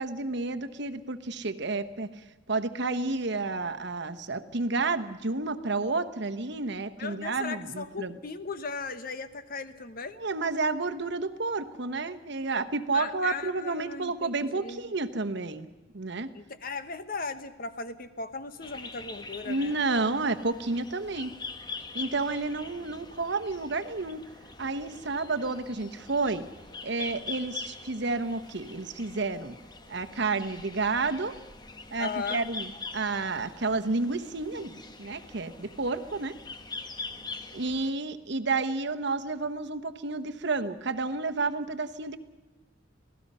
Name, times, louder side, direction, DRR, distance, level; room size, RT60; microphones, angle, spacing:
voice 1, 0.0-2.1 2.5-8.2 10.2-15.7 15.9-16.3 19.5-21.3 21.9-24.2 24.6-26.4 26.8-29.6 29.9-31.4 31.9-36.3 37.5-42.2, right 3 dB, 60° right, 8 dB, 1.1 m, -30 dB
voice 2, 7.0-10.2 12.9-14.9 16.3-19.8 32.0-32.4, left 4 dB, 50° left, 11 dB, 1.1 m, -37 dB
sound 1, 18.6-37.9, left 3 dB, 20° left, 1.1 m, -43 dB
27.0 x 17.5 x 5.6 m, 1.2 s
head